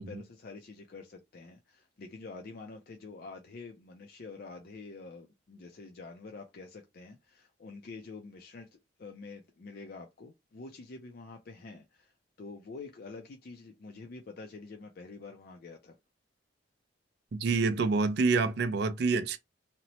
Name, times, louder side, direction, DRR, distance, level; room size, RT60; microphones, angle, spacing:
voice 1, 0.0-12.1 12.4-16.0, left 3 dB, 50° left, 0.4 m, -47 dB
voice 2, 17.3-19.4, right 4 dB, 55° right, 0.4 m, -27 dB
2.9 x 2.0 x 2.7 m
head